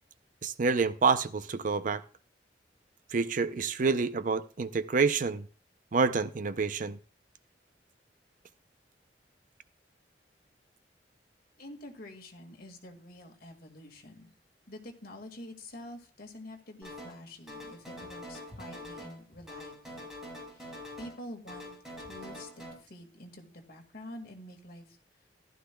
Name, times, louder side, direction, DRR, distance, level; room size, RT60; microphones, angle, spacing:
voice 1, 0.4-2.0 3.1-5.5 5.9-7.0, right 4 dB, 50° right, 0.5 m, -28 dB
voice 2, 11.6-14.3 14.7-20.1 20.5-21.7 22.0-25.0, left 1 dB, 60° left, 1.9 m, -47 dB
sound 1, 16.8-17.2 17.5-19.2 19.5-21.2 21.5-22.7, left 1 dB, 5° right, 4.9 m, -44 dB
14.5 x 12.0 x 2.2 m
head